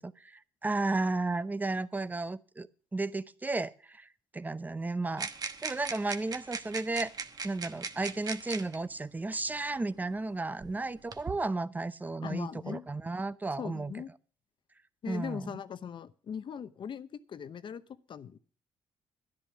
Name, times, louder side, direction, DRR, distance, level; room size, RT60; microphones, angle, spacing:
voice 1, 0.0-2.7 2.9-4.1 4.3-5.3 5.6-7.1 7.4-13.9 15.1-15.5, right 3 dB, 15° right, 16 dB, 0.7 m, -33 dB
sound 1, 5.2-8.8 9.8-9.9 10.6-11.4, right 5 dB, 40° right, 1.2 m, -39 dB
voice 2, 12.2-12.8 13.6-14.1 15.0-17.8 18.1-18.4, left 7 dB, 50° left, 14 dB, 0.9 m, -40 dB
11.0 x 10.5 x 6.1 m, 0.41 s
cardioid pair, 80°, 10 cm